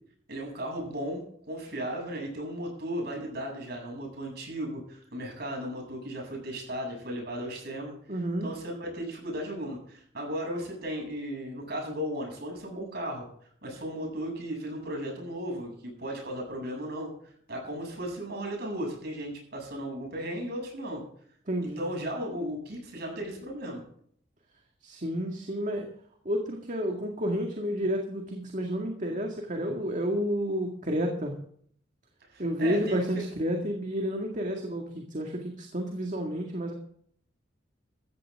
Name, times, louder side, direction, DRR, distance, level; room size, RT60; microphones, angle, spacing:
voice 1, 0.3-7.9 8.4-13.3 13.6-17.1 17.5-21.0 21.8-23.8 32.3-33.0, equal, 60° right, 1 dB, 7.6 m, -35 dB
voice 2, 8.1-8.5 21.5-21.9 24.8-25.9 26.3-31.4 32.4-36.7, equal, 40° right, 2 dB, 2.0 m, -30 dB
15.0 x 14.5 x 3.7 m, 0.62 s
head